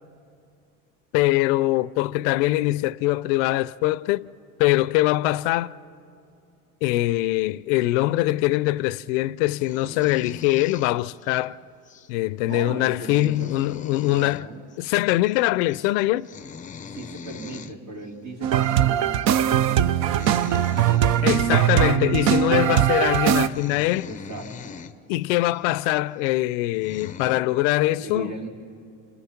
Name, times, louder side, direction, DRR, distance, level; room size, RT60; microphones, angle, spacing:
voice 1, 1.1-4.3 4.6-5.7 6.8-11.6 12.1-14.5 14.8-16.3 21.2-24.1 25.1-28.3, left 17 dB, 85° left, 0.6 m, -23 dB
sound 1, 9.6-11.4 11.9-12.1 12.5-12.6 12.9-14.5 14.7-14.9 15.1-15.4 15.7-15.9 16.2-17.8 18.5-18.7 19.2-19.4 19.9-21.6 22.2-22.3 22.9-23.0 23.3-24.9 25.5-25.6 26.3-26.4 26.7-27.4, left 6 dB, 20° left, 0.6 m, -41 dB
voice 2, 12.4-13.6 14.0-14.7 16.9-20.8 24.0-24.8 27.8-28.5, right 3 dB, 70° right, 4.0 m, -38 dB
sound 2, 18.4-23.5, right 10 dB, 50° right, 0.6 m, -20 dB
28.0 x 26.5 x 5.8 m
cardioid pair, 140°, 35 cm